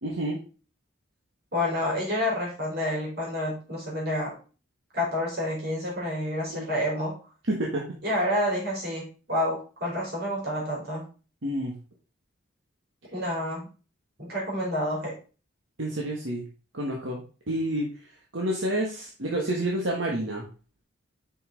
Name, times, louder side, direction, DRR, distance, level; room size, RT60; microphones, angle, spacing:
voice 1, 0.0-0.4 6.5-6.7 7.5-7.8 11.4-11.7 15.8-16.4 16.7-17.2 17.5-17.9 18.3-20.4, right 1 dB, 70° right, -2 dB, 1.5 m, -29 dB
voice 2, 1.5-4.3 4.9-7.2 8.0-11.1 13.1-13.7 14.2-15.2, left 1 dB, 50° right, -3 dB, 4.0 m, -29 dB
6.5 x 5.7 x 3.9 m, 0.35 s
head